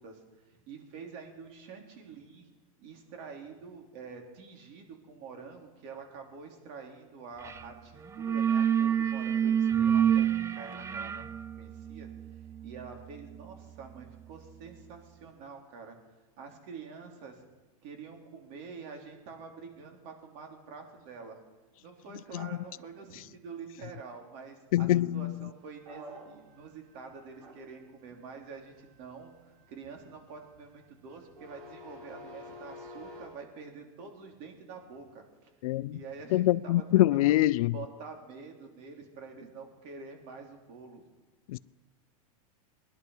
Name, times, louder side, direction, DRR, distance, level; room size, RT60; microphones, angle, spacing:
voice 1, 0.0-2.5 2.8-11.3 11.6-12.1 12.6-16.0 16.4-17.5 17.8-21.4 21.8-29.3 29.7-35.5 35.9-36.8 37.1-37.4 37.7-41.0, right 5 dB, 50° right, 3.3 m, -47 dB
sound 1, 7.4-7.7 8.0-14.6, right 8 dB, 15° right, 0.5 m, -29 dB
voice 2, 24.7-25.5 35.6-36.0 36.3-37.8 41.5-41.6, left 15 dB, 70° left, 0.5 m, -25 dB
sound 2, 25.7-33.3, left 1 dB, 85° right, 6.6 m, -49 dB
20.5 x 11.0 x 5.6 m
supercardioid pair, 130°, 19 cm